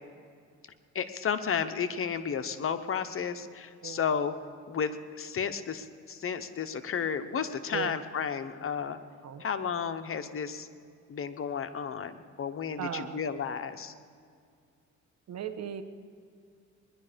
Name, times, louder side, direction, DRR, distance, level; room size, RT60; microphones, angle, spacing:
voice 1, 0.9-4.3 4.7-9.0 9.4-10.7 11.1-13.9, left 7 dB, 45° left, 10 dB, 1.0 m, -32 dB
voice 2, 12.8-13.2 15.3-15.8, right 9 dB, 60° right, 8 dB, 1.2 m, -37 dB
20.5 x 11.0 x 5.2 m, 2.3 s
cardioid pair, 90°, 30 cm